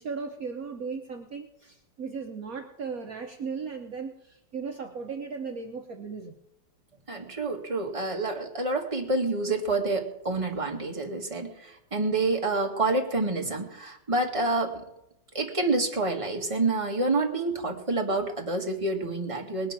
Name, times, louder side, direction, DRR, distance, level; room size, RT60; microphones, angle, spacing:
voice 1, 0.0-6.3, right 5 dB, 55° right, 3 dB, 1.3 m, -36 dB
voice 2, 7.1-14.8 15.3-19.7, right 2 dB, 15° right, 1 dB, 1.9 m, -28 dB
19.5 x 9.9 x 6.0 m, 0.83 s
omnidirectional pair, 2.0 m